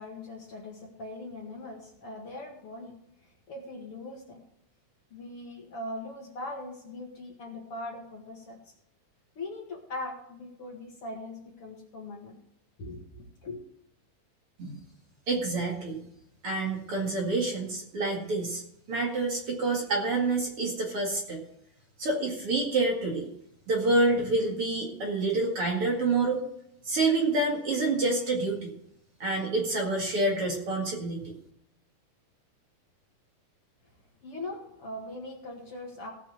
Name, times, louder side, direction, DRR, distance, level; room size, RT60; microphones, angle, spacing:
voice 1, 0.0-3.0 3.5-4.4 5.1-8.6 9.4-12.4 12.8-13.6 34.2-36.1, left 2 dB, 45° left, 0 dB, 2.4 m, -40 dB
voice 2, 15.3-16.0 16.4-18.6 18.9-21.4 22.0-23.3 23.7-26.4 26.9-28.7 29.2-31.3, right 2 dB, 45° right, 0 dB, 2.6 m, -27 dB
17.0 x 6.1 x 6.5 m, 0.74 s
omnidirectional pair, 4.0 m